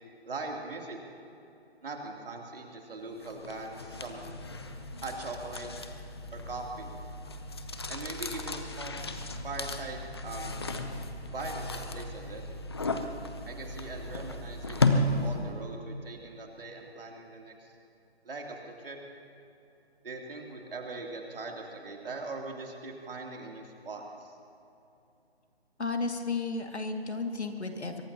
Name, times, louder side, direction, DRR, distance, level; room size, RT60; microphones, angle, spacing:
voice 1, 0.2-1.0 1.8-4.2 5.0-5.7 6.3-6.9 7.9-9.0 9.4-10.6 11.3-11.7 11.9-12.4 13.5-17.7 18.2-19.0 20.0-24.3, right 3 dB, 60° right, 0 dB, 2.9 m, -41 dB
sound 1, 3.2-15.6, left 2 dB, 25° left, 0.6 m, -34 dB
voice 2, 25.8-28.0, left 3 dB, 85° left, 4 dB, 2.1 m, -33 dB
23.0 x 20.5 x 2.9 m, 2.8 s
figure-of-eight pair, 160°, 33 cm